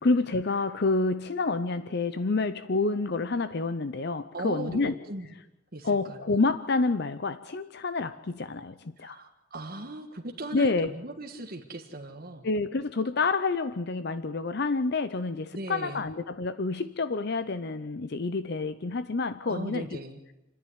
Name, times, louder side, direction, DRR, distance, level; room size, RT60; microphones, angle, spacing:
voice 1, 0.0-4.9 5.8-9.2 10.5-10.9 12.4-19.9, left 3 dB, 50° left, 12 dB, 0.6 m, -28 dB
voice 2, 4.3-5.3 5.7-6.4 9.0-12.5 15.5-16.0 19.4-20.2, right 2 dB, 45° right, 3 dB, 1.6 m, -38 dB
29.0 x 10.5 x 9.5 m, 0.94 s
head